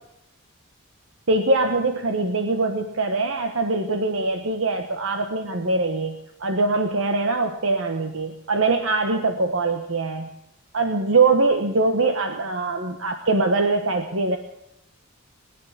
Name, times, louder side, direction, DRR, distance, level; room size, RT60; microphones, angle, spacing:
voice 1, 1.3-10.3 10.7-14.4, right 3 dB, 65° right, 5 dB, 1.2 m, -23 dB
19.5 x 9.8 x 7.4 m, 0.82 s
head